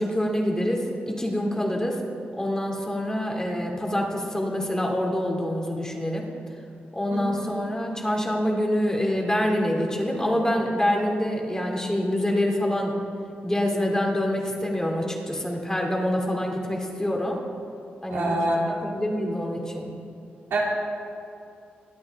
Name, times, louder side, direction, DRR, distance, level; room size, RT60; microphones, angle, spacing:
voice 1, 0.0-2.0 2.4-6.3 6.9-13.0 13.4-17.4 18.0-18.3 18.7-19.9, left 1 dB, 15° left, 0 dB, 2.8 m, -26 dB
voice 2, 7.1-7.5 18.1-18.6 20.5-20.6, right 2 dB, 85° right, -5 dB, 3.0 m, -26 dB
22.0 x 8.7 x 3.6 m, 2.6 s
cardioid pair, 55°, 4 cm